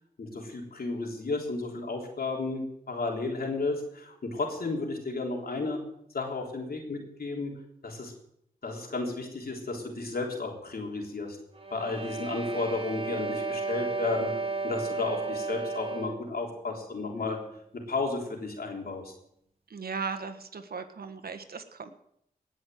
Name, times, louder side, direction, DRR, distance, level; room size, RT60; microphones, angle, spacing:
voice 1, 0.2-5.8 6.1-7.5 7.8-8.1 8.6-11.4 11.7-14.3 14.6-17.4 17.9-19.1, left 3 dB, 70° left, 1 dB, 3.5 m, -33 dB
sound 1, 11.5-16.3, right 4 dB, 35° right, 2.1 m, -33 dB
voice 2, 19.7-21.9, right 5 dB, 70° right, 8 dB, 1.5 m, -37 dB
19.0 x 6.3 x 7.7 m, 0.73 s
cardioid pair, 45°, 16 cm